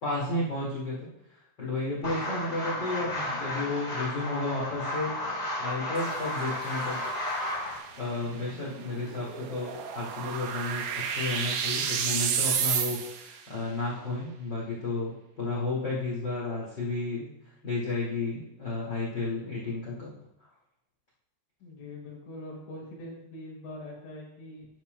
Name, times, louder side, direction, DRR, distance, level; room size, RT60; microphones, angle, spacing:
voice 1, 0.0-1.1 1.6-5.1 5.6-7.0 7.9-20.1, left 2 dB, 50° left, -6 dB, 1.3 m, -32 dB
sound 1, 2.0-7.8, left 1 dB, 30° left, 1.2 m, -33 dB
sound 2, 6.0-13.4, right 7 dB, 75° right, 2.7 m, -32 dB
voice 2, 21.6-24.7, left 1 dB, 80° left, -3 dB, 5.4 m, -43 dB
12.0 x 10.5 x 2.2 m, 0.83 s
omnidirectional pair, 5.3 m